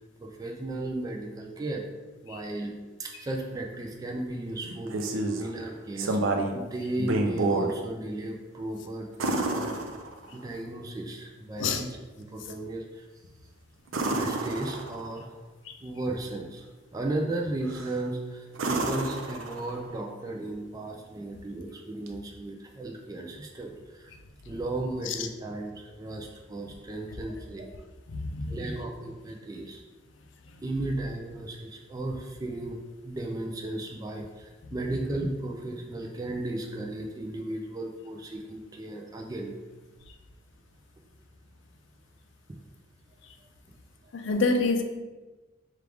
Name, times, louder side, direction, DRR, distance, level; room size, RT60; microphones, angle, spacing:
voice 1, 0.2-1.8 2.2-2.7 3.0-6.2 6.5-9.1 9.5-9.8 10.3-11.9 12.2-13.2 13.9-15.3 15.8-16.6 16.9-24.2 24.5-27.7 28.5-29.8 30.6-32.8 33.0-39.5 42.5-42.6 44.0-44.1, right 2 dB, 20° right, 1 dB, 0.3 m, -35 dB
sound 1, 4.6-5.5 6.0-6.6 7.0-7.7 9.2-10.5 13.9-15.2 17.7-18.0 18.5-19.9 22.1-22.2, right 2 dB, 90° right, 0.5 m, -29 dB
voice 2, 28.1-28.6 44.1-44.8, left 3 dB, 65° left, 5 dB, 0.4 m, -27 dB
4.7 x 2.4 x 3.4 m, 1.2 s
head